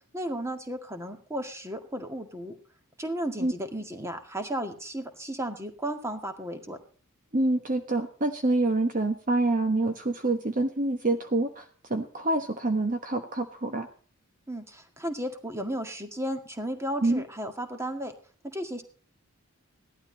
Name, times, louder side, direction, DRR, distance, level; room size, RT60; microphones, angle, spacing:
voice 1, 0.1-2.5 3.0-6.8 14.5-18.1 18.5-18.8, right 1 dB, 10° right, 6 dB, 1.9 m, -34 dB
voice 2, 7.3-11.6 11.9-13.9 17.0-17.2, right 2 dB, 35° right, 6 dB, 1.1 m, -26 dB
17.0 x 12.0 x 4.0 m, 0.42 s
head